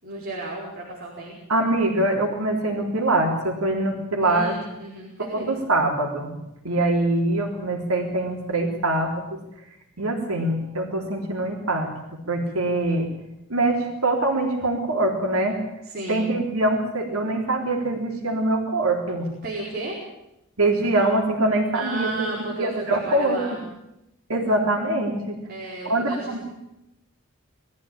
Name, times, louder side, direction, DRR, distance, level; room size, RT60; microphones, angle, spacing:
voice 1, 0.0-1.4 4.2-5.5 15.8-16.3 19.4-20.0 21.7-23.6 25.5-26.4, right 2 dB, 50° right, -4 dB, 4.8 m, -33 dB
voice 2, 1.5-4.6 5.2-6.4 6.6-9.4 10.0-13.1 13.5-15.6 16.1-19.3 20.6-22.3 22.6-23.4 24.3-25.4 25.9-26.4, right 2 dB, 90° right, 1 dB, 3.6 m, -23 dB
22.0 x 14.0 x 8.9 m, 0.88 s
head